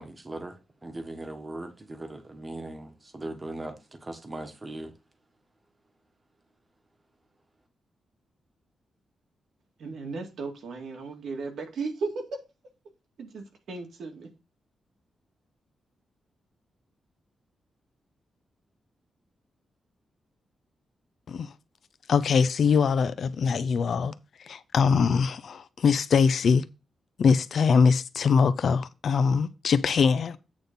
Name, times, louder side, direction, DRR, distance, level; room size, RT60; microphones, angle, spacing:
voice 1, 0.0-4.9, right 2 dB, 20° right, 1.3 m, -39 dB
voice 2, 9.8-12.4 13.2-14.3, right 4 dB, 75° right, 2.1 m, -35 dB
voice 3, 22.1-26.6 27.2-30.4, left 5 dB, 60° left, 0.6 m, -23 dB
8.7 x 3.9 x 5.4 m
wide cardioid pair, 140°, 0 cm